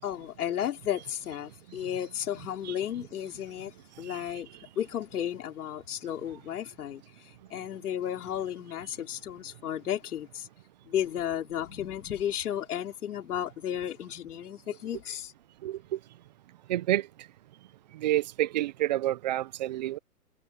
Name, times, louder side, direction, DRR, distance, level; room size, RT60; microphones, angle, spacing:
voice 1, 0.0-3.7 4.0-4.5 4.8-7.0 7.5-10.5 10.9-15.3, left 10 dB, 70° left, 4.6 m, -33 dB
voice 2, 15.6-16.0 16.7-17.1 17.9-20.0, right 14 dB, 30° right, 0.5 m, -29 dB
hypercardioid pair, 145°, 47 cm